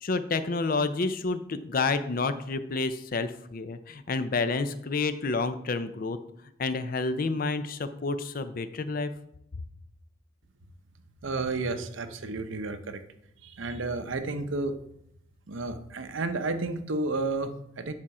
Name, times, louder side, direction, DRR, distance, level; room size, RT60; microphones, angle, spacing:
voice 1, 0.0-6.2 6.6-9.1, left 3 dB, 45° left, 11 dB, 0.5 m, -29 dB
voice 2, 11.2-13.0 13.4-14.8 15.5-17.9, right 3 dB, 80° right, 9 dB, 0.8 m, -31 dB
9.7 x 4.3 x 4.8 m, 0.75 s
head